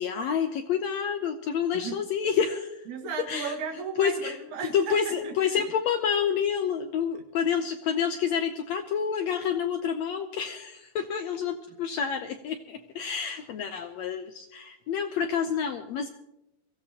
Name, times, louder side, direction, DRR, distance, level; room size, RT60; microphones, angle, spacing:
voice 1, 0.0-2.8 3.3-3.5 4.0-4.4 4.7-16.1, left 7 dB, 75° left, 7 dB, 1.6 m, -28 dB
voice 2, 1.7-2.1 2.9-5.6, right 5 dB, 60° right, 2 dB, 3.0 m, -36 dB
23.0 x 15.5 x 2.9 m, 0.88 s
omnidirectional pair, 4.0 m